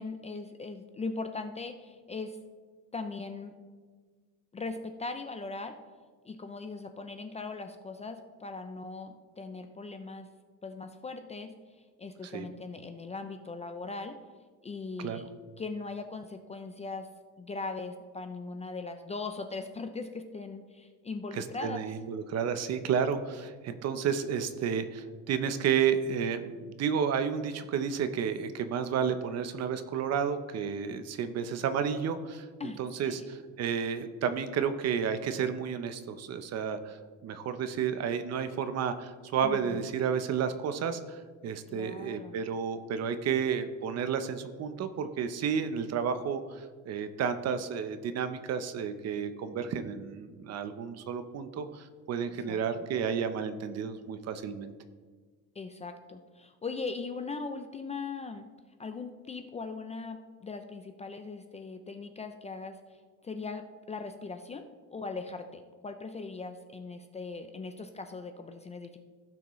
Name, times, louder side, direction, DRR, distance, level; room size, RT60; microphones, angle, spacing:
voice 1, 0.0-2.4 2.9-3.5 4.5-5.8 6.2-10.3 10.6-14.2 14.6-15.3 15.6-17.1 17.4-21.9 32.6-32.8 33.0-33.3 39.4-39.8 41.7-42.4 52.5-52.6 55.6-58.5 58.8-69.0, left 3 dB, 20° left, 7 dB, 0.4 m, -39 dB
voice 2, 21.3-32.4 32.8-37.0 37.2-54.7, right 7 dB, 50° right, 10 dB, 0.7 m, -31 dB
16.0 x 5.9 x 3.1 m, 1.5 s
cardioid pair, 150°, 34 cm